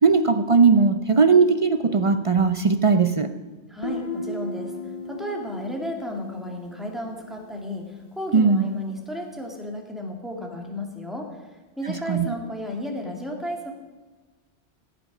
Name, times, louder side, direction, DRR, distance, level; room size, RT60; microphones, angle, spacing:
voice 1, 0.0-3.3 8.3-8.6 12.1-12.3, right 4 dB, 40° right, 10 dB, 0.5 m, -18 dB
voice 2, 3.7-4.7 5.1-11.3 11.8-13.7, left 1 dB, ahead, 0 dB, 2.0 m, -33 dB
Guitar, 3.8-7.5, left 2 dB, 40° left, 1.0 m, -35 dB
16.0 x 8.5 x 6.0 m, 1.2 s
omnidirectional pair, 1.1 m